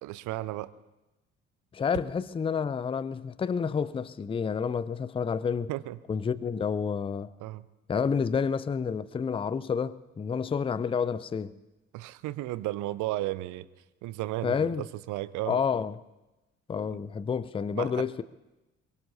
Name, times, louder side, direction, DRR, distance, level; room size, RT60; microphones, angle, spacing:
voice 1, 0.0-0.7 5.7-6.0 7.4-7.6 11.9-13.7 14.0-15.6 16.9-17.0 17.7-18.1, right 16 dB, 55° right, 0.7 m, -34 dB
voice 2, 1.7-5.7 6.1-7.3 7.9-11.5 14.4-14.8 15.5-16.0 16.7-18.2, left 6 dB, 15° left, 0.5 m, -29 dB
23.0 x 22.0 x 2.8 m
figure-of-eight pair, 50°, 35 cm